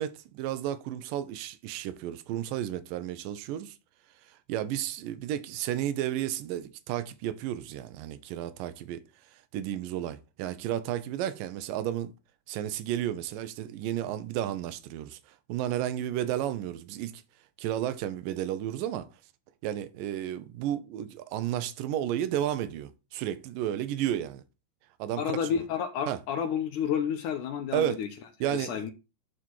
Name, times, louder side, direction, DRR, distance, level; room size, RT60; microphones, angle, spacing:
voice 1, 0.0-3.8 4.5-9.0 9.5-12.1 12.5-17.2 17.6-19.1 19.6-24.4 25.0-25.2 26.1-26.2 27.7-28.0 28.4-28.9, right 11 dB, 75° right, 2.2 m, -32 dB
voice 2, 25.2-28.1 28.5-28.9, left 8 dB, 75° left, 1.9 m, -30 dB
11.5 x 4.2 x 4.6 m
omnidirectional pair, 4.5 m